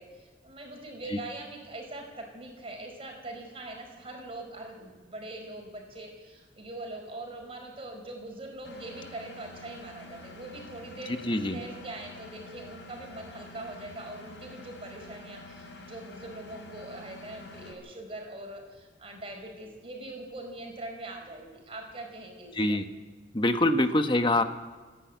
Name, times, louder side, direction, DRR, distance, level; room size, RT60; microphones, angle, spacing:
voice 1, 0.0-11.1 11.5-22.8, right 2 dB, 30° right, 2 dB, 5.1 m, -42 dB
Engine, 8.6-17.7, left 2 dB, 80° left, 4.3 m, -47 dB
voice 2, 11.2-11.6 22.5-22.8 23.3-24.4, left 1 dB, 25° left, 8 dB, 1.2 m, -24 dB
28.0 x 10.5 x 9.4 m, 1.3 s
head